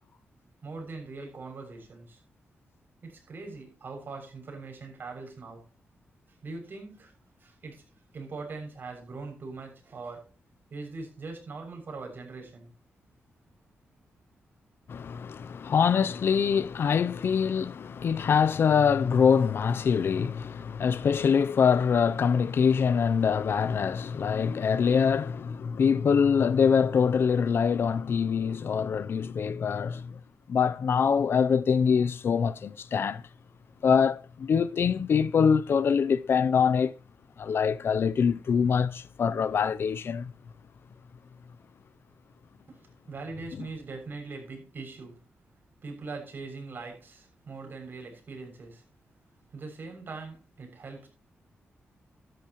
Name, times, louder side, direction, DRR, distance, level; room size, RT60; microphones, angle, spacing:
voice 1, 0.6-2.2 3.0-5.6 6.4-7.1 7.4-7.8 8.1-10.3 10.7-12.7 42.7-42.8 43.1-45.2 45.8-48.8 49.5-51.1, right 3 dB, 50° right, 6.8 m, -41 dB
voice 2, 14.9-30.2 30.5-33.2 33.8-36.9 37.4-40.3, left 6 dB, 60° left, 0.6 m, -24 dB
13.5 x 12.0 x 3.1 m
wide cardioid pair, 125°, 4 cm